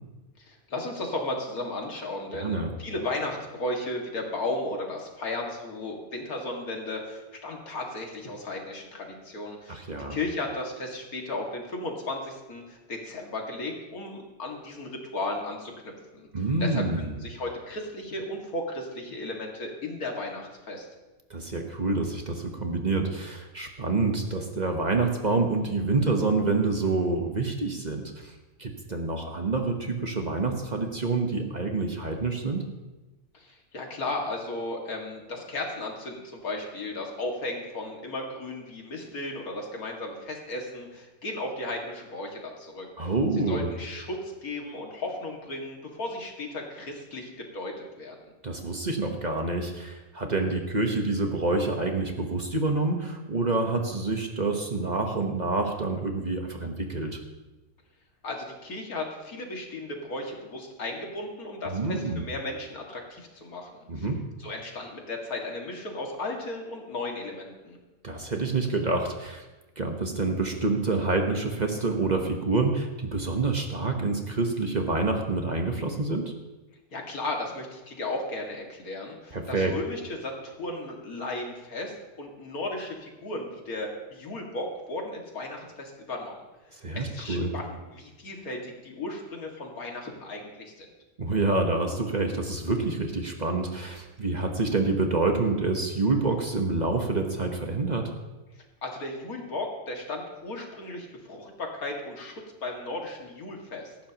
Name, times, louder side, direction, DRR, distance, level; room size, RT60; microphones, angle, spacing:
voice 1, 0.4-16.3 16.6-20.9 33.3-43.1 43.5-48.1 58.2-64.1 64.4-67.8 76.9-86.4 86.7-90.9 98.5-104.0, left 2 dB, 85° left, 1 dB, 2.6 m, -35 dB
voice 2, 2.3-2.7 9.7-10.2 16.3-17.1 21.3-28.3 28.6-32.6 43.0-43.7 48.4-57.2 61.6-62.2 63.9-64.2 68.0-69.4 69.8-76.3 79.3-79.7 86.8-87.5 91.2-98.1, right 3 dB, 30° right, 3 dB, 1.2 m, -27 dB
17.5 x 14.5 x 3.0 m, 1.1 s
omnidirectional pair, 1.5 m